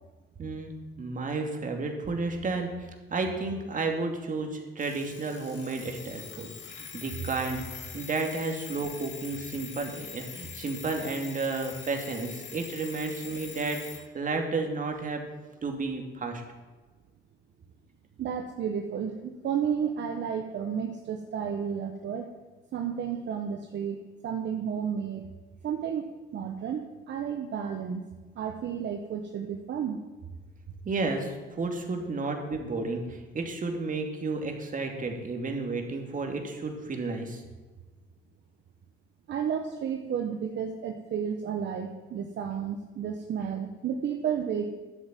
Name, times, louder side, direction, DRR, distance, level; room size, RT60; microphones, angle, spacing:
voice 1, 0.4-7.7 7.9-15.3 15.6-16.4 30.8-37.4, right 3 dB, 40° right, 3 dB, 2.5 m, -32 dB
Alarm, 4.8-14.1, left 7 dB, 65° left, 2.2 m, -44 dB
voice 2, 18.2-22.3 22.7-25.3 25.6-26.1 26.3-28.0 28.4-30.0 39.3-44.7, right 7 dB, 65° right, 4 dB, 1.1 m, -32 dB
11.5 x 8.3 x 7.6 m, 1.3 s
cardioid pair, 90°, 20 cm